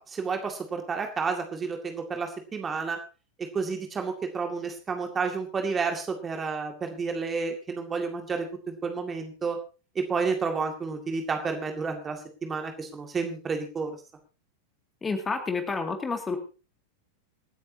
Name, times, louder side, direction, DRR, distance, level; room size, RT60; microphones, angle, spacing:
voice 1, 0.0-3.0 3.4-9.6 10.0-14.0, right 5 dB, 20° right, 4 dB, 2.2 m, -31 dB
voice 2, 15.0-16.4, left 4 dB, 15° left, 5 dB, 2.3 m, -29 dB
26.5 x 9.3 x 2.8 m, 0.34 s
figure-of-eight pair, 90°, 0 cm